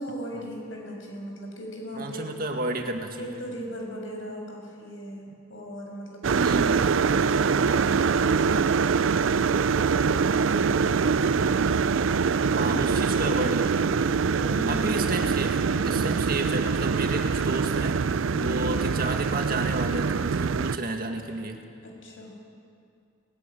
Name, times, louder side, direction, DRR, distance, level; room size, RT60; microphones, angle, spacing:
voice 1, 0.0-2.3 3.2-8.7 9.4-11.9 12.4-13.8 14.3-15.1 15.7-16.2 18.3-18.7 21.8-22.3, equal, 85° left, 1 dB, 6.0 m, -38 dB
voice 2, 2.0-3.4 6.3-6.7 12.5-13.6 14.7-18.0 18.4-21.6, right 2 dB, 50° right, 4 dB, 1.9 m, -32 dB
sound 1, 6.2-20.8, right 5 dB, 85° right, 0.5 m, -24 dB
20.0 x 16.0 x 9.8 m, 2.4 s
head